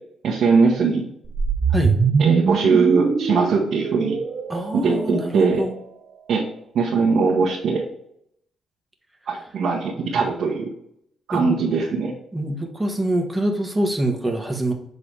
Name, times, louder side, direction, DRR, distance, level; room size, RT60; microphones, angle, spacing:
voice 1, 0.2-1.0 2.2-4.2 4.7-5.6 6.3-6.4 6.7-7.9 9.3-10.7 11.3-12.1, right 4 dB, 65° right, -4 dB, 1.2 m, -20 dB
sound 1, 1.2-5.6, right 5 dB, 45° right, 0.8 m, -22 dB
voice 2, 4.5-5.8 11.3-11.6 12.3-14.7, right 1 dB, 10° right, 3 dB, 1.4 m, -25 dB
7.4 x 3.9 x 3.4 m, 0.73 s
cardioid pair, 90°, 0 cm